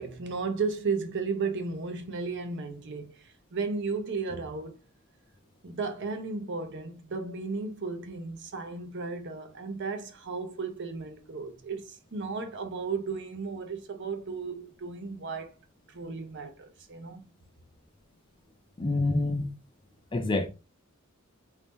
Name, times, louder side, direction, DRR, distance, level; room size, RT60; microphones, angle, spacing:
voice 1, 0.0-4.8 5.6-15.5 15.9-17.3, right 4 dB, 55° right, 0.7 m, -34 dB
voice 2, 18.8-19.5 20.1-20.5, left 2 dB, 25° left, 0.4 m, -26 dB
4.0 x 2.7 x 3.6 m
head